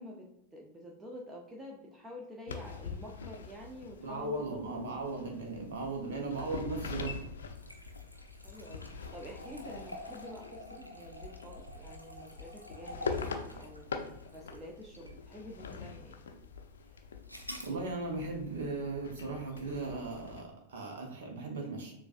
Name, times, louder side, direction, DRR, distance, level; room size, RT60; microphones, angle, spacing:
voice 1, 0.0-4.8 8.4-13.9 14.3-16.2, equal, 15° right, -1 dB, 0.6 m, -48 dB
sound 1, 2.5-20.4, left 5 dB, 65° left, 0.5 m, -44 dB
voice 2, 4.0-7.2 17.6-21.9, right 3 dB, 60° right, 0 dB, 0.9 m, -37 dB
sound 2, 6.8-15.2 15.7-15.8 17.3-17.8, equal, 90° right, 0.6 m, -49 dB
6.8 x 2.4 x 2.5 m, 0.81 s
figure-of-eight pair, 90°, 0 cm